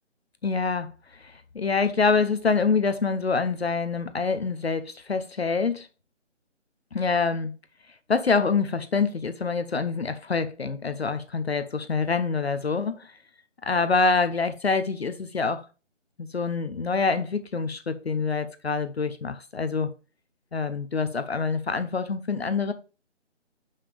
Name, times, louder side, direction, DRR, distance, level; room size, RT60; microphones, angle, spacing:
voice 1, 0.4-0.9 1.2-5.9 6.9-7.5 8.1-13.1 13.6-15.6 16.2-19.9 20.5-22.7, left 4 dB, 55° left, 0.7 m, -26 dB
6.9 x 5.6 x 3.3 m
figure-of-eight pair, 175°, 36 cm